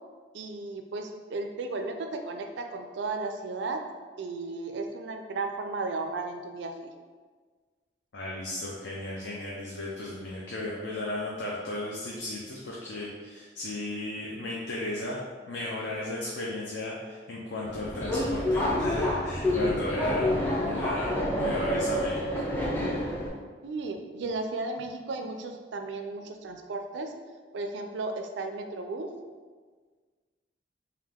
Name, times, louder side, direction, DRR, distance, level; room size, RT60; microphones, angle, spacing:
voice 1, 0.3-3.9 4.2-6.9 23.6-27.1 27.5-29.1, right 3 dB, 75° right, 5 dB, 0.4 m, -34 dB
voice 2, 8.1-15.2 15.5-20.3 20.6-22.5, left 1 dB, 75° left, -4 dB, 0.5 m, -35 dB
Subway metro underground, 17.6-23.3, left 1 dB, 10° left, 0.5 m, -28 dB
3.6 x 2.8 x 3.5 m, 1.5 s
head